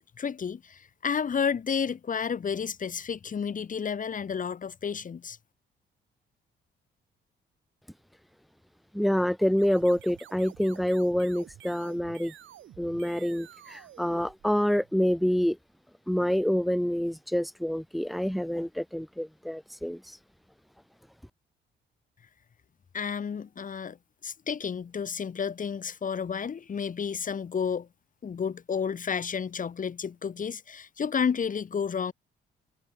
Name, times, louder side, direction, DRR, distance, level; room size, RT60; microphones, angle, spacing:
voice 1, 0.2-5.4 22.9-24.0 24.2-27.9 28.2-32.1, left 6 dB, 40° left, 1.9 m, -31 dB
voice 2, 8.9-12.3 12.8-15.6 16.1-20.0, equal, ahead, 0.3 m, -27 dB
sound 1, 9.5-14.9, right 12 dB, 75° right, 3.8 m, -51 dB
cardioid pair, 90°, 20 cm